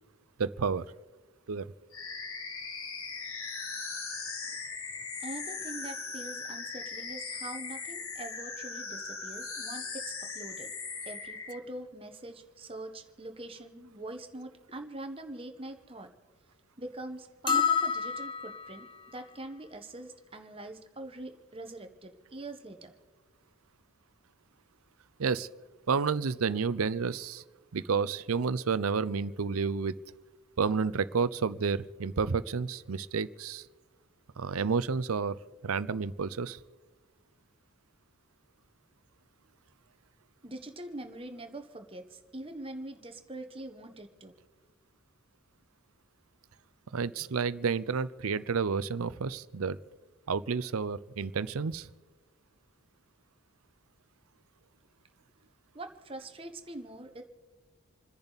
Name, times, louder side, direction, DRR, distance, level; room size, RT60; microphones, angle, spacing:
voice 1, 0.4-0.9 1.5-1.7 25.2-25.5 25.9-27.4 27.7-29.9 30.6-33.7 34.4-36.6 46.9-49.8 50.3-51.9, right 5 dB, 80° right, 16 dB, 0.6 m, -30 dB
sound 1, 1.9-11.6, left 4 dB, 75° left, 1.9 m, -39 dB
voice 2, 5.2-10.7 11.1-16.1 16.8-22.9 40.4-44.3 55.7-57.2, right 1 dB, 25° right, 6 dB, 1.2 m, -43 dB
sound 2, 17.5-18.8, left 6 dB, 20° left, 1.0 m, -28 dB
28.5 x 10.5 x 4.1 m, 1.3 s
head